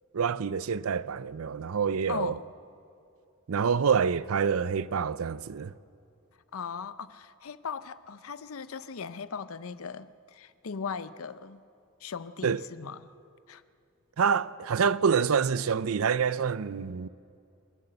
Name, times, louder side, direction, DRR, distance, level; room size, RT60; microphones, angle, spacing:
voice 1, 0.1-2.4 3.5-5.7 12.4-12.6 14.2-17.1, right 6 dB, 85° right, 0.5 m, -27 dB
voice 2, 2.1-2.4 6.5-11.6 12.0-13.0 13.5-13.6, left 5 dB, 85° left, 0.6 m, -38 dB
28.0 x 11.5 x 7.9 m
head